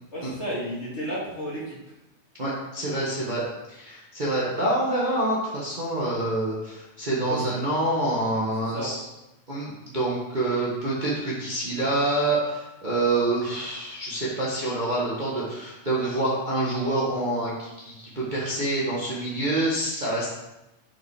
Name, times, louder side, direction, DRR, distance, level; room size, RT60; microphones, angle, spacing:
voice 1, 0.1-1.8 7.3-7.5 8.7-8.9, equal, 25° left, -7 dB, 2.5 m, -32 dB
voice 2, 2.4-9.0 9.5-20.3, right 2 dB, 50° right, -6 dB, 0.5 m, -27 dB
8.0 x 5.4 x 4.9 m, 0.94 s
omnidirectional pair, 3.5 m